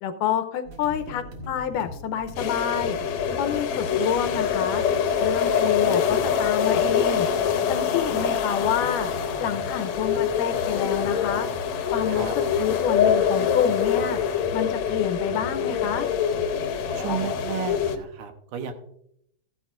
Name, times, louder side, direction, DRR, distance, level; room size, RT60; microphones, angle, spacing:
voice 1, 0.0-3.0 3.4-4.8 5.2-7.3 7.7-9.1 9.4-11.5 11.9-14.2 14.5-16.1, left 9 dB, 90° left, 9 dB, 2.4 m, -28 dB
sound 1, 0.6-18.0, right 1 dB, 50° right, 2.1 m, -40 dB
sound 2, 2.4-18.0, left 8 dB, 70° left, 1.9 m, -25 dB
voice 2, 16.9-18.7, right 8 dB, 75° right, 6 dB, 2.4 m, -32 dB
15.0 x 10.5 x 2.5 m, 0.73 s
omnidirectional pair, 3.7 m